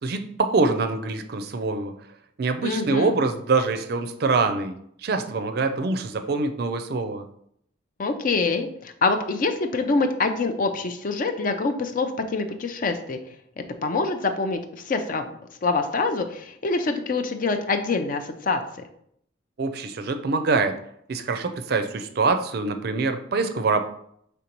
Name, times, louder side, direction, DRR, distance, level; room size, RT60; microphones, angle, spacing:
voice 1, 0.0-1.9 2.4-7.2 19.6-20.8 21.1-23.8, right 3 dB, 55° right, 8 dB, 0.4 m, -24 dB
voice 2, 2.6-3.1 8.0-13.2 13.8-15.3 15.6-18.6, left 3 dB, 45° left, 7 dB, 0.4 m, -25 dB
5.1 x 3.4 x 2.9 m, 0.69 s
head